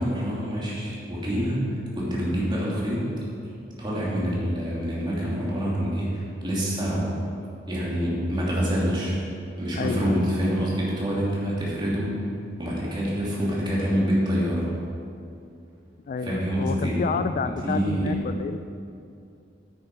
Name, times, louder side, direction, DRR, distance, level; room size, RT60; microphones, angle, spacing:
voice 1, 0.0-3.0 3.8-7.0 7.7-9.2 9.6-12.1 12.6-14.7 16.2-17.1 17.6-18.1, equal, 25° right, -6 dB, 2.7 m, -26 dB
voice 2, 9.8-10.3 16.1-18.6, left 5 dB, 45° left, 10 dB, 0.3 m, -29 dB
10.0 x 8.7 x 4.6 m, 2.5 s
head